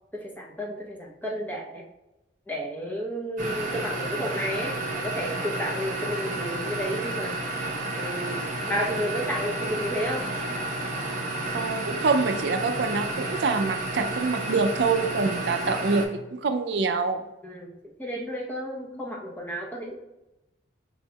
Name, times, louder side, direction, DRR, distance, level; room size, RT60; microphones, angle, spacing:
voice 1, 0.1-1.8 2.5-7.3 7.9-10.2 17.4-19.9, equal, 10° left, -2 dB, 0.8 m, -32 dB
sound 1, 3.4-16.1, right 2 dB, 40° right, 0.8 m, -31 dB
voice 2, 11.5-17.2, right 4 dB, 60° right, 7 dB, 0.4 m, -25 dB
5.5 x 4.3 x 2.3 m, 0.98 s
head